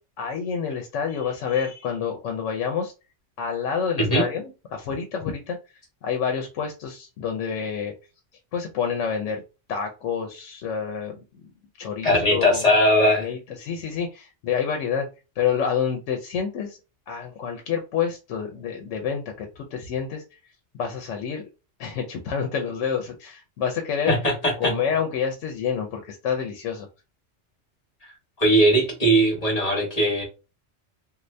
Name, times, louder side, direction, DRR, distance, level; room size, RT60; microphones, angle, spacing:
voice 1, 0.2-2.9 3.4-4.4 4.7-5.6 6.0-7.9 8.5-9.4 9.7-11.2 11.8-12.7 13.0-15.1 15.4-16.8 17.1-20.2 20.7-21.4 21.8-24.1 24.6-26.9, left 7 dB, 85° left, 3 dB, 1.0 m, -28 dB
voice 2, 12.0-13.2 24.1-24.7 28.0-30.2, equal, 35° left, 0 dB, 1.2 m, -20 dB
2.6 x 2.5 x 3.2 m, 0.30 s
omnidirectional pair, 1.2 m